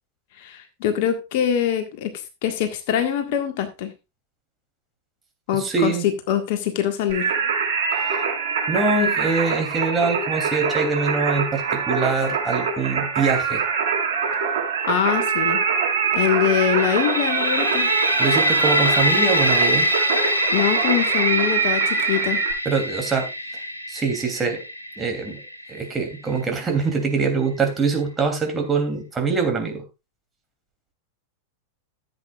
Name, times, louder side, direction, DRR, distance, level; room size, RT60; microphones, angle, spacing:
voice 1, 0.4-2.1 2.4-3.9 5.5-5.9 6.3-7.3 14.9-15.6 16.1-17.9 20.5-22.4, left 9 dB, 50° left, 7 dB, 1.6 m, -23 dB
voice 2, 5.5-6.0 7.9-8.2 8.7-13.6 18.2-19.9 22.6-24.6 25.0-25.4 25.7-29.8, right 4 dB, 15° right, 3 dB, 2.9 m, -24 dB
Singing, 7.1-22.5, right 6 dB, 55° right, 4.3 m, -24 dB
sound 1, 16.8-26.5, equal, 85° left, 1.2 m, -24 dB
15.0 x 8.1 x 2.4 m, 0.26 s
figure-of-eight pair, 90°, 0 cm